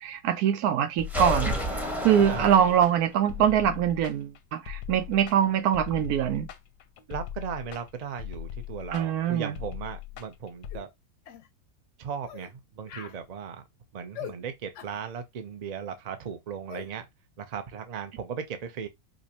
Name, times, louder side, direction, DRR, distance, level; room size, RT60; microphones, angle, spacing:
voice 1, 0.0-6.5 8.9-9.6, right 9 dB, 85° right, 1.1 m, -24 dB
sound 1, 1.0-10.8, left 11 dB, 90° left, 1.2 m, -40 dB
sound 2, 1.1-3.2, left 1 dB, ahead, 0.4 m, -31 dB
voice 2, 2.3-2.7 7.1-10.9 12.0-13.6 13.9-17.1 17.4-18.9, right 7 dB, 70° right, 0.4 m, -37 dB
sound 3, 10.7-10.9 11.3-11.5 12.3-12.5 12.9-13.2 14.1-14.4 14.7-15.0 16.7-16.9, left 10 dB, 65° left, 0.8 m, -41 dB
5.0 x 2.1 x 2.8 m
omnidirectional pair, 1.6 m